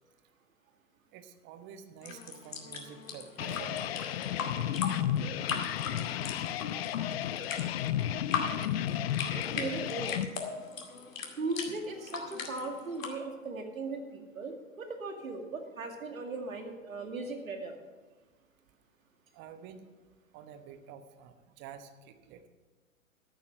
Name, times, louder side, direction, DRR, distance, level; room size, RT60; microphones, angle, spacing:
voice 1, 1.1-3.9 4.2-4.5 19.3-19.8 20.3-22.4, right 8 dB, 25° right, 9 dB, 1.0 m, -49 dB
sound 1, 2.0-13.1, left 5 dB, 70° left, 2.4 m, -40 dB
sound 2, 3.4-10.3, left 11 dB, 50° left, 0.7 m, -33 dB
voice 2, 9.3-10.2 11.4-17.7, right 3 dB, 80° right, 4 dB, 2.2 m, -38 dB
14.0 x 9.0 x 5.8 m, 1.3 s
hypercardioid pair, 120°, 41 cm